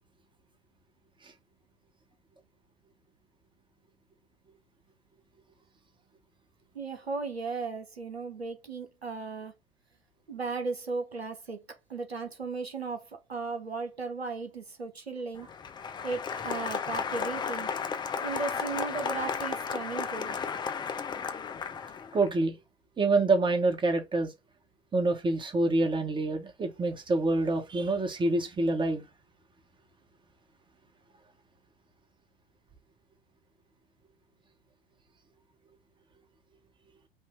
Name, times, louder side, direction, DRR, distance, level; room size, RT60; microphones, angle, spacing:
voice 1, 6.7-9.5 10.3-11.6 11.9-15.5 16.0-17.7 18.2-20.4, right 4 dB, 90° right, 1.1 m, -36 dB
Applause, 15.3-22.3, left 6 dB, 15° left, 0.5 m, -34 dB
voice 2, 22.1-22.6 23.0-24.3 24.9-29.0, right 2 dB, 15° right, 1.3 m, -26 dB
5.6 x 2.6 x 3.6 m
figure-of-eight pair, 85°, 30 cm